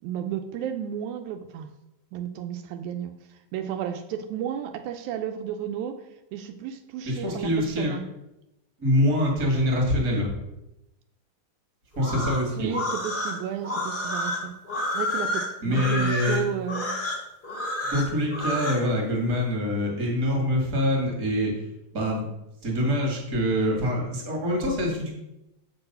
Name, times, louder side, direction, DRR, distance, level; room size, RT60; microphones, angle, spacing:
voice 1, 0.0-1.7 2.1-3.1 3.5-6.0 6.3-8.0 12.6-14.5 14.9-17.0, right 9 dB, 85° right, 7 dB, 2.0 m, -33 dB
voice 2, 7.1-7.9 8.8-10.3 12.0-12.7 15.6-16.4 17.9-21.5 21.9-22.2 22.6-25.1, equal, 35° right, 0 dB, 1.9 m, -25 dB
sound 1, 11.9-18.8, left 1 dB, 55° left, 0.5 m, -30 dB
6.9 x 4.4 x 5.4 m, 0.89 s
omnidirectional pair, 3.4 m